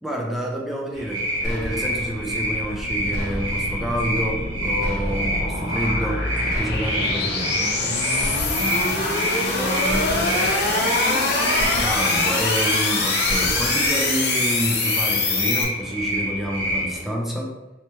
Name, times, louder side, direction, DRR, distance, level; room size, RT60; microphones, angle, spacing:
voice 1, 0.0-7.7 10.1-10.3 11.8-17.6, equal, ahead, -2 dB, 0.5 m, -28 dB
sound 1, 0.9-17.0, equal, 75° right, 1.5 m, -28 dB
sound 2, 1.4-2.1 3.1-3.8 4.8-5.5 6.5-7.2 8.2-8.9 9.9-10.6 11.6-12.3 13.2-13.9, equal, 20° left, 1.2 m, -32 dB
sound 3, 1.8-15.6, left 3 dB, 60° left, 0.7 m, -25 dB
voice 2, 8.6-11.9, equal, 55° right, -6 dB, 1.4 m, -32 dB
3.2 x 3.1 x 3.0 m, 1.0 s
head